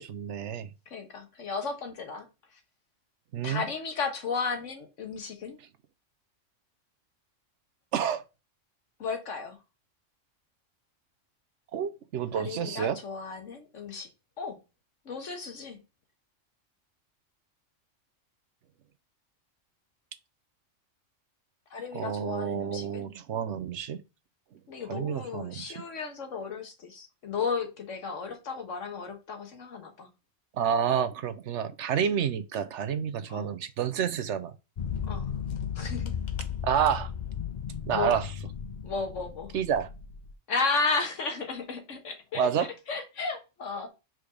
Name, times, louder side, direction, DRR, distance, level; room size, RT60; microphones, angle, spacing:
voice 1, 0.0-0.7 3.3-3.7 7.9-8.2 11.7-13.0 21.9-24.0 24.9-25.7 30.6-34.5 36.6-37.1 37.9-38.3 39.5-39.9 42.4-42.7, right 8 dB, 70° right, 1.0 m, -29 dB
voice 2, 0.9-2.3 3.4-5.6 9.0-9.6 12.3-14.1 14.4-14.6 15.0-15.8 21.7-23.1 24.7-30.1 33.3-33.5 35.1-35.3 35.7-36.1 37.9-38.1 38.8-39.5 40.5-42.4 42.9-43.9, left 4 dB, 75° left, 1.6 m, -34 dB
sound 1, 34.8-40.3, left 7 dB, 45° left, 0.7 m, -35 dB
5.1 x 4.5 x 5.1 m
omnidirectional pair, 1.3 m